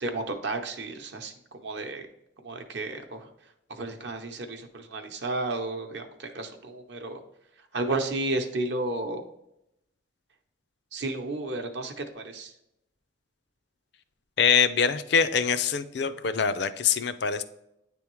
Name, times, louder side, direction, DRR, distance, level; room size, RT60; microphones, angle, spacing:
voice 1, 0.0-1.3 1.6-2.0 2.4-3.3 3.7-7.2 7.7-9.2 10.9-12.5, right 2 dB, 60° right, 5 dB, 0.7 m, -32 dB
voice 2, 14.4-17.4, left 6 dB, 60° left, 12 dB, 0.4 m, -24 dB
9.4 x 3.5 x 3.0 m, 0.83 s
head